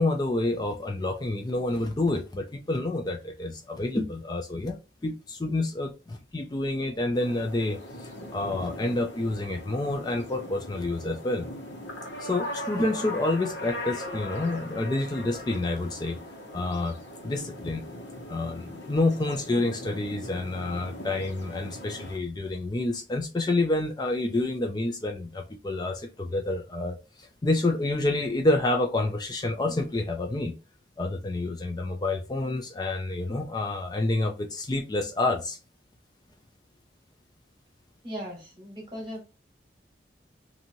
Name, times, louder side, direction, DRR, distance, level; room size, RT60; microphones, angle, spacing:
voice 1, 0.0-11.5 12.2-16.2 16.5-17.0 17.2-17.8 18.3-30.5 31.0-35.6, left 2 dB, 20° left, 0.3 m, -28 dB
sound 1, 7.1-22.2, left 1 dB, 85° left, 1.1 m, -40 dB
voice 2, 38.0-39.3, equal, 25° right, 1.2 m, -38 dB
2.9 x 2.6 x 2.6 m
head